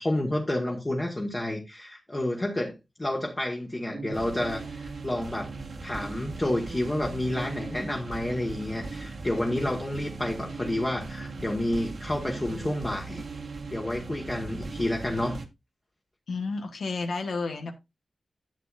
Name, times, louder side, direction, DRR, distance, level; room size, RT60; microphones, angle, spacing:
voice 1, 0.0-5.5 5.8-13.2 13.7-15.4, left 1 dB, 25° left, 1.5 m, -30 dB
sound 1, 3.9-15.5, right 3 dB, 65° right, 1.3 m, -38 dB
voice 2, 16.3-17.7, left 4 dB, 80° left, 1.2 m, -31 dB
10.5 x 7.7 x 2.5 m
wide cardioid pair, 95°, 0 cm